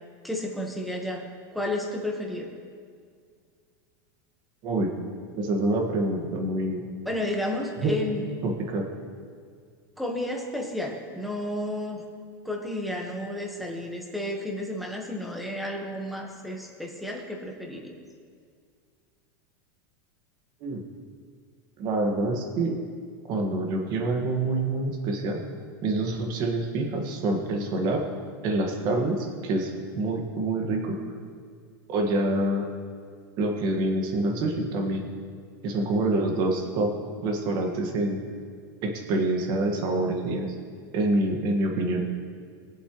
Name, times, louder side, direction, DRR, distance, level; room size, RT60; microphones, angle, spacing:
voice 1, 0.2-1.2 1.5-2.5 7.0-8.3 10.0-12.0 12.4-17.9, left 1 dB, ahead, 1 dB, 1.4 m, -32 dB
voice 2, 5.3-6.8 7.8-8.0 8.4-8.9 20.6-20.8 21.8-22.7 23.3-25.4 25.8-28.1 28.4-31.0 31.9-32.7 33.4-35.0 35.6-36.9 37.2-38.2 38.8-40.5 40.9-42.0, right 2 dB, 40° right, 2 dB, 1.7 m, -26 dB
22.0 x 7.8 x 3.2 m, 2.1 s
supercardioid pair, 155°, 11 cm